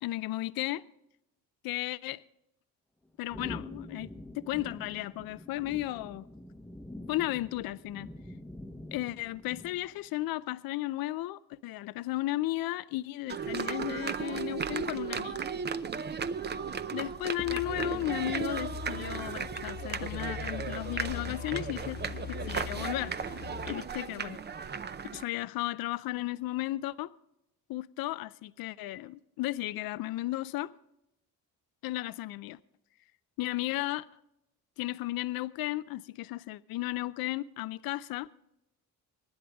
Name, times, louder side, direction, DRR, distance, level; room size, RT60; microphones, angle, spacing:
voice 1, 0.0-0.8 1.6-2.2 3.2-4.1 4.4-6.3 7.1-8.1 8.9-15.4 16.9-22.0 22.5-23.4 23.7-24.4 25.1-27.1 27.7-30.7 31.8-32.6 33.4-34.1 34.8-38.3, left 17 dB, 80° left, 0.5 m, -34 dB
sound 1, 3.3-10.1, left 1 dB, 5° left, 0.9 m, -46 dB
sound 2, 13.3-25.2, right 6 dB, 30° right, 0.6 m, -35 dB
sound 3, 17.4-23.8, left 8 dB, 30° left, 0.4 m, -42 dB
24.5 x 10.0 x 3.5 m
cardioid pair, 110°, 35 cm